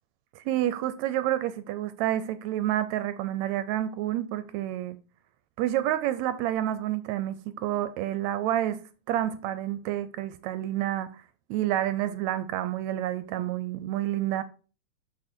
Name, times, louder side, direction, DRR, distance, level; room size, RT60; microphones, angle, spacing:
voice 1, 0.4-5.0 5.6-11.2 11.5-14.4, right 12 dB, 80° right, 1.8 m, -29 dB
6.2 x 5.8 x 4.3 m
omnidirectional pair, 3.4 m